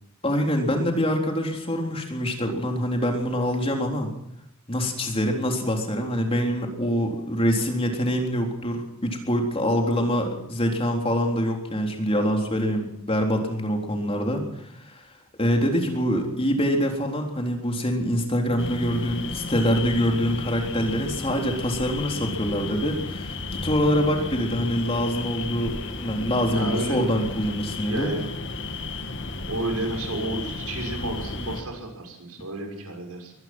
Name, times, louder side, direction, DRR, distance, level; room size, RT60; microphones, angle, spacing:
voice 1, 0.2-4.1 4.7-15.0 15.4-23.4 23.6-28.1, equal, 25° left, 2 dB, 3.8 m, -25 dB
sound 1, 18.6-31.6, left 3 dB, 55° left, 2.1 m, -33 dB
voice 2, 26.5-27.2 27.6-28.3 29.5-33.3, right 2 dB, 90° right, 2 dB, 6.4 m, -31 dB
23.0 x 18.0 x 6.2 m, 0.75 s
head